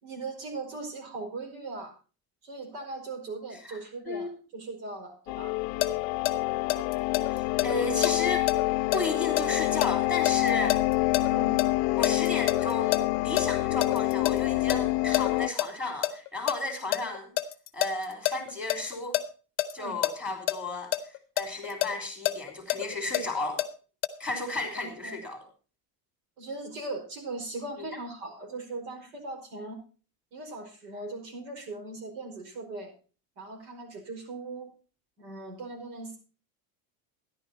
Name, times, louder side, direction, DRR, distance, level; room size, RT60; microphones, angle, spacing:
voice 1, 0.0-1.9 2.4-5.5 11.3-11.6 19.8-20.0 24.8-25.2 26.4-29.8 30.3-32.9 33.4-34.7 35.2-36.2, right 3 dB, 75° right, 3 dB, 5.1 m, -39 dB
sound 1, 5.3-15.5, left 20 dB, 55° left, 0.5 m, -27 dB
sound 2, 5.8-11.7 12.0-14.4 14.7-14.8 15.1-15.7 16.0-19.2 19.6-19.7 20.0-20.1 20.5-20.6 20.9-23.7 24.0-24.1, left 15 dB, 30° left, 0.8 m, -27 dB
voice 2, 7.3-8.4 8.9-10.8 11.9-17.3 17.7-19.2 19.7-20.9 21.4-23.6 24.2-25.4 27.8-28.0, left 2 dB, 5° right, 4 dB, 3.1 m, -33 dB
13.0 x 11.0 x 4.1 m, 0.36 s
cardioid pair, 175°, 46 cm